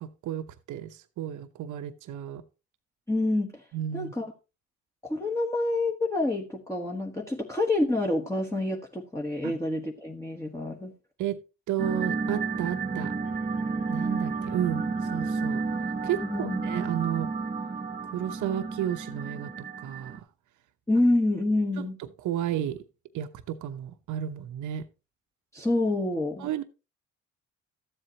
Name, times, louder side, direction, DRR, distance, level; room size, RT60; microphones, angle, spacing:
voice 1, 0.0-2.4 3.7-4.1 9.4-9.6 11.2-11.4 11.7-13.1 13.9-15.6 16.0-17.3 18.1-19.5 19.8-20.3 21.8-21.9 22.2-22.8 23.1-24.8 26.4-26.6, right 10 dB, 80° right, 0.9 m, -32 dB
voice 2, 3.1-3.6 3.9-4.3 5.0-10.9 16.2-16.7 20.9-22.0 25.5-26.5, left 2 dB, 10° left, 1.2 m, -27 dB
sound 1, 11.8-20.2, right 4 dB, 25° right, 1.0 m, -31 dB
13.0 x 7.8 x 2.9 m
cardioid pair, 90°, 30 cm